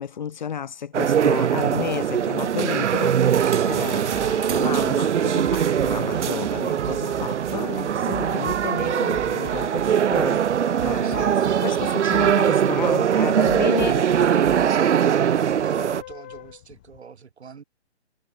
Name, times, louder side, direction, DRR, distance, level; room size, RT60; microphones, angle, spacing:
voice 1, 0.0-10.4 10.8-11.3 11.6-14.0, left 8 dB, 40° left, 0.7 m, -32 dB
sound 1, 0.9-16.0, right 9 dB, 85° right, 0.7 m, -21 dB
sound 2, 3.7-17.0, left 15 dB, 10° left, 0.6 m, -44 dB
sound 3, 4.1-14.8, right 25 dB, 20° right, 3.5 m, -41 dB
voice 2, 10.8-14.5 15.3-17.6, right 6 dB, 70° right, 4.8 m, -42 dB
hypercardioid pair, 165°, 34 cm